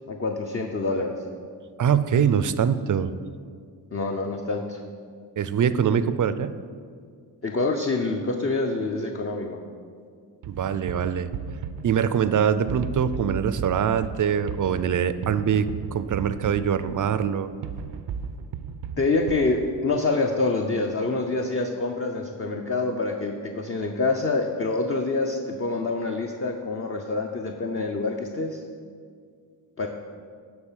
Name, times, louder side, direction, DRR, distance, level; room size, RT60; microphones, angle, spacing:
voice 1, 0.1-1.2 3.9-4.8 7.4-9.6 19.0-28.6 29.8-29.9, left 3 dB, 35° left, 2 dB, 0.6 m, -26 dB
voice 2, 1.8-3.1 5.4-6.5 10.5-11.3 11.8-17.5, right 8 dB, 50° right, 13 dB, 0.5 m, -23 dB
sound 1, 10.4-20.0, right 6 dB, 90° right, 0.6 m, -36 dB
11.0 x 4.0 x 7.3 m, 2.1 s
wide cardioid pair, 105°, 42 cm